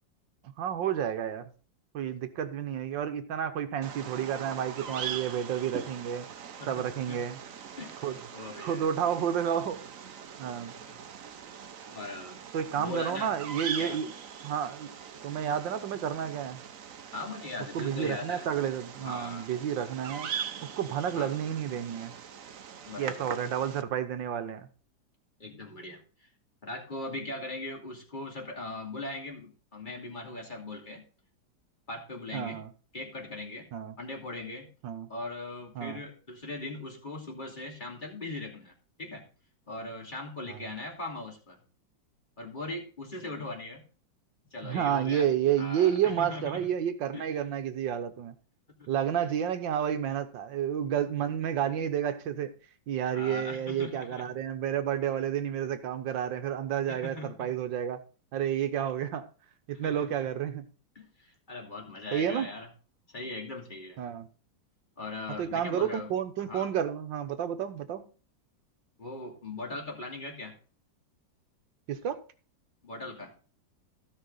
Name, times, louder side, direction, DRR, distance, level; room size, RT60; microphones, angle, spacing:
voice 1, 0.4-1.5 1.9-6.3 6.7-7.4 8.0-8.2 8.6-9.8 10.4-10.7 12.5-14.1 14.4-14.9 15.2-16.6 17.7-20.3 20.6-22.1 23.0-24.7 32.3-32.7 33.7-33.9 34.8-35.1 35.7-36.0 40.5-40.7 44.6-48.3 48.9-52.5 52.9-58.0 58.3-59.3 59.7-60.7 62.1-62.5 64.0-64.3 65.4-68.0 71.9-72.2, right 9 dB, 75° right, 9 dB, 1.7 m, -30 dB
Bird vocalization bird call bird song, 3.8-23.8, right 8 dB, 55° right, 1.1 m, -42 dB
voice 2, 6.6-7.2 7.8-8.8 10.9-11.0 11.9-12.4 12.7-13.3 13.8-14.0 17.1-18.4 19.0-19.5 21.1-21.3 22.9-23.3 25.4-26.0 26.6-31.0 31.9-32.6 32.9-33.7 34.0-34.7 35.1-38.7 39.0-39.2 39.7-41.6 42.4-43.8 44.5-45.3 45.6-46.7 47.1-47.3 48.8-48.9 53.1-54.3 56.9-57.5 59.7-60.1 60.9-62.7 63.1-64.0 65.0-66.1 66.4-66.7 69.0-70.5 72.8-73.3, left 2 dB, 25° left, 0 dB, 2.8 m, -40 dB
16.0 x 5.7 x 4.0 m, 0.38 s
omnidirectional pair, 2.1 m